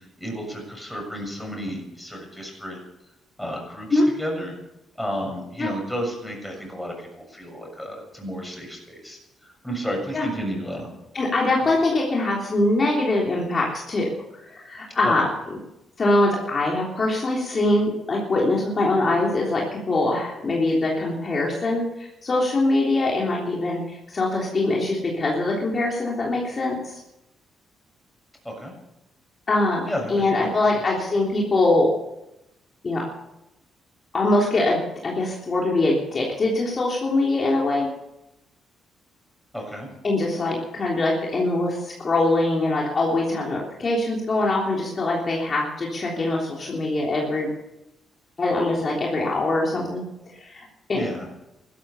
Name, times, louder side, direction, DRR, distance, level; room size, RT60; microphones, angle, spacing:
voice 1, 0.0-2.8 3.4-4.5 5.0-10.9 11.6-11.7 15.0-15.1 28.4-28.7 29.9-30.8 39.5-39.9 50.9-51.3, equal, 5° left, 0 dB, 7.0 m, -32 dB
voice 2, 11.1-14.1 14.5-15.3 16.0-27.0 29.5-29.8 30.1-31.9 32.8-33.0 34.1-37.9 40.0-47.5 48.4-50.0 50.4-51.1, left 2 dB, 40° left, -3 dB, 3.5 m, -23 dB
15.0 x 13.5 x 7.1 m, 0.90 s
cardioid pair, 90°, 0 cm